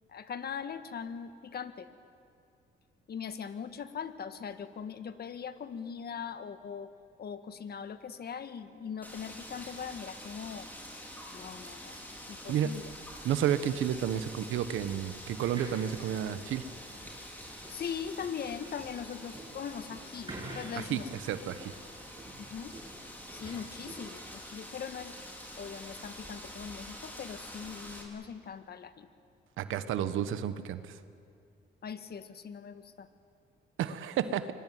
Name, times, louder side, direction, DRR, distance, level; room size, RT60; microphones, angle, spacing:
voice 1, 0.1-1.9 3.1-6.9 7.2-10.7 11.3-12.0 12.3-12.9 17.7-21.1 22.4-22.7 23.3-25.1 25.6-29.1 31.8-33.1, left 7 dB, 55° left, 10 dB, 1.7 m, -40 dB
Wind, 9.0-28.0, equal, 10° left, 5.2 m, -46 dB
voice 2, 13.2-16.6 20.8-21.0 21.3-21.7 29.6-31.0 33.8-34.4, right 10 dB, 85° right, 12 dB, 1.3 m, -31 dB
sound 1, 15.2-24.4, right 2 dB, 25° right, 7.8 m, -49 dB
25.0 x 22.0 x 9.4 m, 2.6 s
cardioid pair, 90°, 20 cm